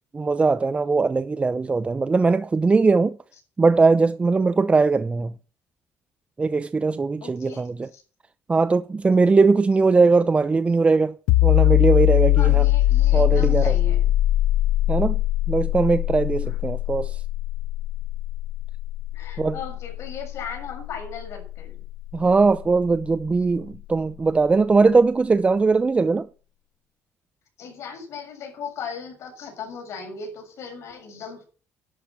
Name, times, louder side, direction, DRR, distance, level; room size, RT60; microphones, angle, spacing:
voice 1, 0.1-3.2 3.6-5.3 6.4-7.9 8.5-11.2 11.4-12.7 13.1-13.7 14.9-15.2 15.5-17.2 19.4-19.6 22.1-26.3, right 4 dB, 25° right, 0.7 m, -20 dB
voice 2, 7.2-8.0 12.4-14.0 16.4-16.6 19.1-21.8 27.6-31.4, left 5 dB, 65° left, 7.0 m, -37 dB
sound 1, 11.3-22.7, left 16 dB, 85° left, 0.7 m, -22 dB
11.5 x 11.5 x 7.5 m
cardioid pair, 90°, 5 cm